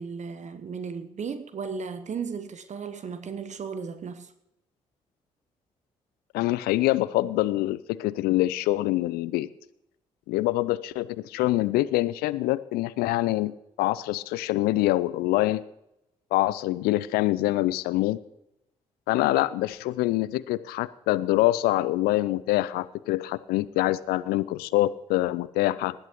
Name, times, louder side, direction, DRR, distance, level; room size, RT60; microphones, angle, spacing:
voice 1, 0.0-4.3, right 5 dB, 45° right, 1.0 m, -35 dB
voice 2, 6.3-9.5 10.3-15.6 16.3-18.2 19.1-25.9, left 17 dB, 65° left, 0.6 m, -25 dB
19.5 x 11.5 x 3.1 m
figure-of-eight pair, 40°, 17 cm